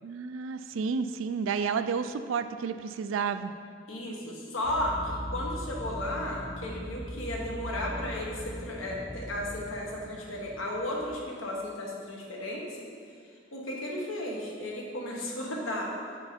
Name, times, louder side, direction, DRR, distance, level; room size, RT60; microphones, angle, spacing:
voice 1, 0.0-3.5, right 5 dB, 75° right, 11 dB, 0.3 m, -31 dB
voice 2, 3.9-12.8 13.5-15.9, left 1 dB, 90° left, -2 dB, 1.2 m, -34 dB
sound 1, 4.6-11.4, equal, 20° right, 0.6 m, -40 dB
7.8 x 4.5 x 4.3 m, 2.2 s
head